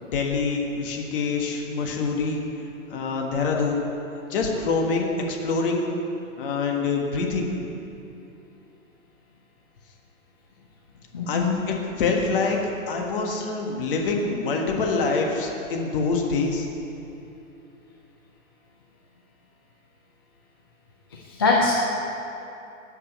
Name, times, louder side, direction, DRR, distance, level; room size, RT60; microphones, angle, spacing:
voice 1, 0.0-2.4 2.9-3.9 4.3-5.9 6.4-7.5 11.3-16.7, left 4 dB, 40° left, 1 dB, 1.6 m, -25 dB
voice 2, 11.1-11.5 21.4-21.7, left 3 dB, 20° left, -3 dB, 0.4 m, -21 dB
9.1 x 6.6 x 8.3 m, 2.8 s
hypercardioid pair, 150°, 41 cm